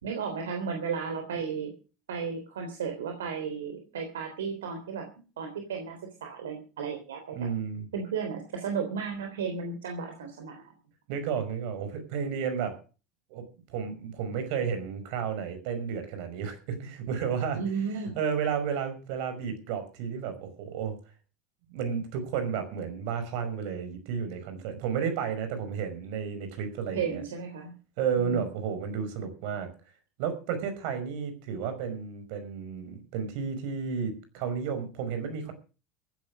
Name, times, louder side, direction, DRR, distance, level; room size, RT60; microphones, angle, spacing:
voice 1, 0.0-1.7 2.1-5.1 5.4-7.4 7.9-10.6 17.5-18.1 26.9-27.7 28.1-28.4, right 6 dB, 85° right, 4 dB, 3.4 m, -34 dB
voice 2, 7.3-7.9 11.1-12.8 13.3-13.4 13.7-17.6 18.2-21.0 21.7-27.2 28.0-29.7 30.2-35.5, right 7 dB, 70° right, 9 dB, 5.6 m, -32 dB
15.5 x 10.0 x 6.4 m, 0.35 s
hypercardioid pair, 75°, 0 cm